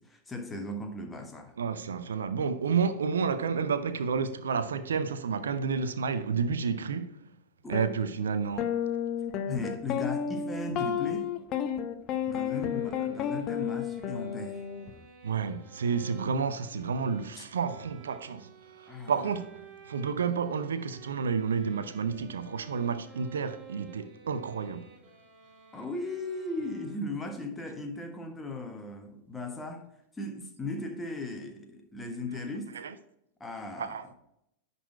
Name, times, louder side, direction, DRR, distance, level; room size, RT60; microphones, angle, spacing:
voice 1, 0.0-1.5 7.6-7.9 9.5-11.3 12.2-14.6 17.4-17.5 18.9-19.1 25.7-29.8 30.1-32.7 33.4-34.0, left 2 dB, 10° left, 1.4 m, -37 dB
voice 2, 1.6-7.2 7.7-8.7 15.2-18.5 18.8-19.5 19.9-24.9 32.7-32.9 33.8-34.0, right 6 dB, 65° right, 0.6 m, -30 dB
sound 1, 7.7-7.9 8.6-14.9, left 8 dB, 35° left, 0.7 m, -31 dB
sound 2, 12.4-27.3, right 6 dB, 30° right, 1.5 m, -54 dB
10.0 x 4.2 x 4.5 m
figure-of-eight pair, 90°, 0 cm